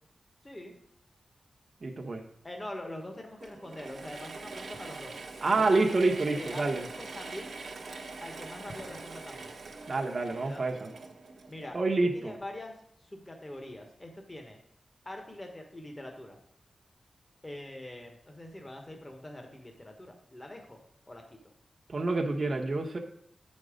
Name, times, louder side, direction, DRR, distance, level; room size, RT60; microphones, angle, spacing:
voice 1, 0.4-0.8 2.4-5.1 5.5-6.0 6.3-7.6 8.2-9.5 10.3-10.8 11.5-12.7 13.0-14.6 15.0-16.4 17.4-21.4, left 1 dB, 20° left, 3 dB, 1.2 m, -44 dB
voice 2, 1.8-2.2 5.4-6.8 9.9-10.9 11.7-12.3 21.9-23.0, right 3 dB, 45° right, 1 dB, 0.9 m, -28 dB
Mechanisms / Drill, 3.4-12.0, right 3 dB, 75° right, 1.1 m, -43 dB
8.7 x 5.3 x 5.0 m, 0.68 s
wide cardioid pair, 105°, 0 cm